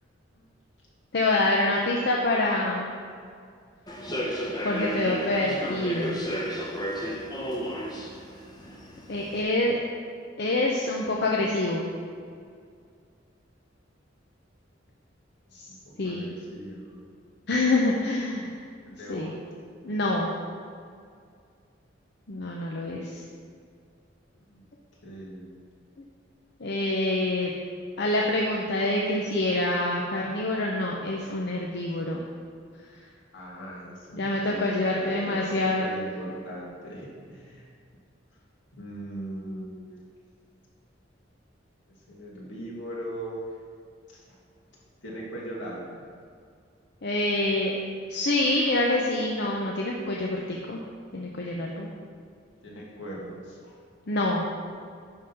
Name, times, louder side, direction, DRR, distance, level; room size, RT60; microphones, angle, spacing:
voice 1, 1.1-2.9 4.6-6.2 9.1-9.8 10.4-11.9 15.5-15.6 16.0-16.2 17.5-18.6 19.1-19.3 19.8-20.3 22.3-23.2 26.6-27.5 28.0-32.2 34.1-35.9 47.0-47.7 48.1-50.8 51.1-51.9 54.1-54.4, left 2 dB, 60° left, -2 dB, 0.7 m, -26 dB
Human voice / Subway metro underground, 3.9-9.4, equal, 20° left, 0.9 m, -33 dB
voice 2, 5.9-6.7 15.7-17.0 18.8-19.4 24.3-24.6 25.0-25.6 33.3-37.7 38.7-40.1 42.1-43.5 44.1-44.4 44.7-46.0 52.6-53.8, right 1 dB, 80° left, -4 dB, 2.3 m, -40 dB
10.5 x 3.8 x 5.7 m, 2.2 s
head